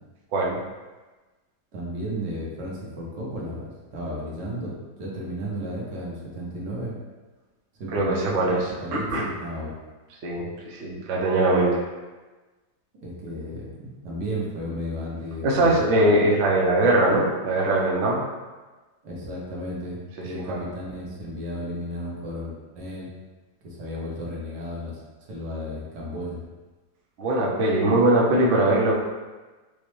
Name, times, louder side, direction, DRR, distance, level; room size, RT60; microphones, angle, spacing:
voice 1, 1.7-6.9 7.8-9.7 12.9-15.9 19.0-23.1 23.6-25.0 25.3-26.4, equal, 85° right, -4 dB, 1.5 m, -33 dB
voice 2, 7.9-8.6 8.9-9.3 10.2-11.8 15.4-18.2 20.5-20.6 27.2-28.9, right 1 dB, 60° right, -3 dB, 0.8 m, -21 dB
5.0 x 2.1 x 3.0 m, 1.2 s
omnidirectional pair, 1.8 m